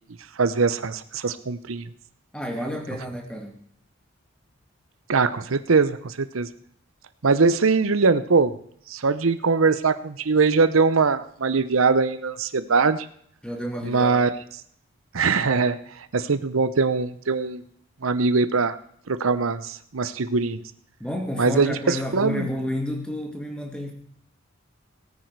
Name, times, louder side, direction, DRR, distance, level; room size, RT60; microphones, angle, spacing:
voice 1, 0.4-1.9 5.1-6.5 7.2-8.5 8.9-13.1 13.8-14.3 15.1-15.8 16.1-17.6 18.0-18.8 19.1-20.6 21.4-22.5, right 4 dB, 90° right, 13 dB, 0.8 m, -22 dB
voice 2, 2.3-3.6 13.4-14.3 21.0-23.9, left 1 dB, 5° left, 3 dB, 2.0 m, -30 dB
18.0 x 9.2 x 4.7 m, 0.64 s
head